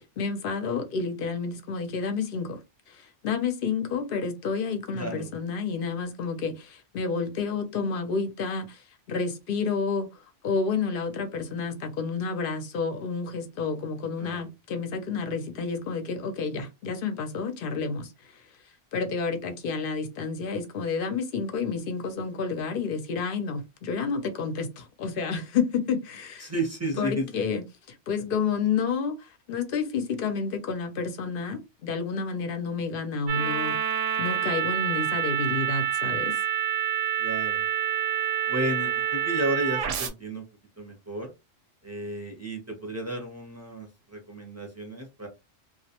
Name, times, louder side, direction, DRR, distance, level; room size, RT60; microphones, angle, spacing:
voice 1, 0.2-2.6 2.9-18.4 18.9-26.5 27.0-33.8 34.2-36.3, left 5 dB, 60° left, 0.6 m, -30 dB
voice 2, 4.9-5.3 14.2-14.5 26.4-27.5 37.2-37.7 38.5-40.4 40.8-41.3 41.8-45.3, right 1 dB, 20° right, 0.5 m, -33 dB
sound 1, 33.3-40.1, right 10 dB, 85° right, 0.9 m, -27 dB
2.3 x 2.1 x 2.8 m
omnidirectional pair, 1.2 m